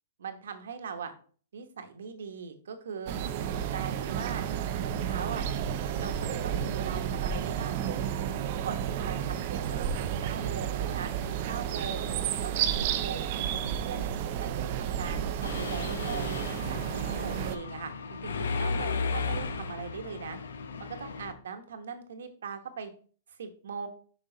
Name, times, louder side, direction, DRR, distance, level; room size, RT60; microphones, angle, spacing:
voice 1, 0.2-1.1 1.5-3.1 3.7-4.4 4.8-5.4 6.0-8.1 8.6-11.1 11.5-12.1 12.4-14.1 14.4-16.3 16.7-20.4 20.8-22.9 23.4-23.9, right 6 dB, 80° right, 7 dB, 1.2 m, -40 dB
sound 1, 3.1-17.6, right 9 dB, 45° right, 0.6 m, -31 dB
Mechanisms, 15.4-21.3, left 4 dB, 85° left, 0.8 m, -35 dB
6.3 x 5.3 x 3.9 m, 0.43 s
hypercardioid pair, 155°, 0 cm